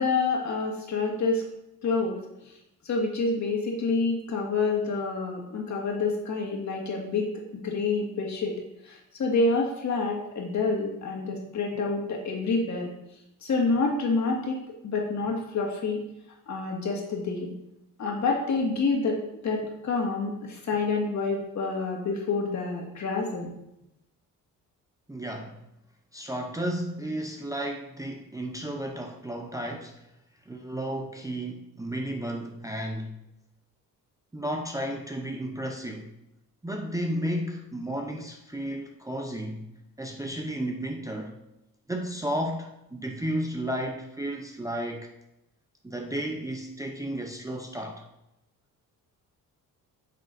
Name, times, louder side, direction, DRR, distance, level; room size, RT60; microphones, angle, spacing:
voice 1, 0.0-1.4 1.8-2.2 2.8-7.3 7.6-12.9 13.4-16.0 16.5-17.5 18.0-23.5, left 3 dB, 55° left, 0 dB, 1.9 m, -28 dB
voice 2, 25.1-25.6 26.1-30.1 30.5-33.1 34.3-36.1 36.6-39.6 40.0-41.4 41.9-45.1 45.8-48.1, right 1 dB, 10° right, 1 dB, 0.6 m, -33 dB
8.3 x 6.5 x 2.6 m, 0.85 s
cardioid pair, 105°, 35 cm